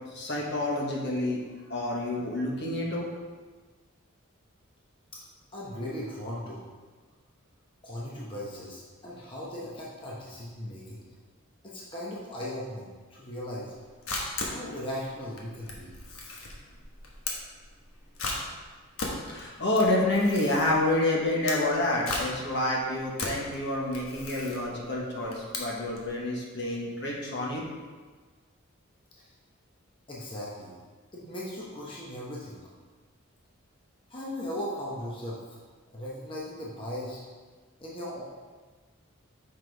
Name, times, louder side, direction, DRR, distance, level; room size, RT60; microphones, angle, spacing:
voice 1, 0.1-1.4 1.7-3.1 19.3-27.6, left 1 dB, 55° left, -3 dB, 1.4 m, -28 dB
voice 2, 5.5-6.6 7.8-11.1 11.6-13.7 14.4-15.9 29.2-29.3 30.1-30.7 31.1-32.6 34.1-35.6 35.9-37.2 37.8-38.2, left 1 dB, 25° left, -6 dB, 1.1 m, -38 dB
Camera, 13.7-26.1, left 2 dB, 80° left, 1.3 m, -37 dB
6.0 x 5.8 x 4.7 m, 1.4 s
head